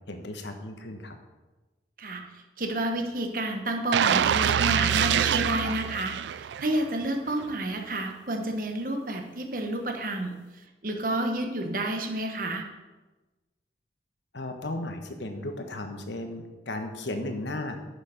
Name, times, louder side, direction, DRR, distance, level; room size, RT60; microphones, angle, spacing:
voice 1, 0.1-1.2 14.3-17.8, left 1 dB, 80° left, 5 dB, 1.2 m, -35 dB
voice 2, 2.0-12.6, right 1 dB, 50° right, 3 dB, 1.2 m, -30 dB
sound 1, 3.9-6.9 7.3-7.4, right 9 dB, 80° right, 0.3 m, -25 dB
10.5 x 6.6 x 5.2 m, 1.2 s
head